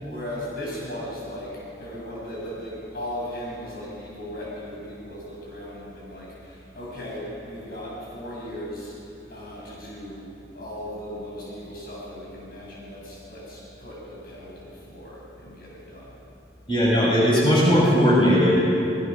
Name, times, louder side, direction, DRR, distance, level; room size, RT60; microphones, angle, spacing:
voice 1, 0.0-8.9 9.3-16.1, equal, 60° left, -5 dB, 6.6 m, -37 dB
voice 2, 16.7-18.6, equal, 30° left, -5 dB, 7.8 m, -18 dB
26.5 x 20.0 x 6.3 m, 2.7 s
head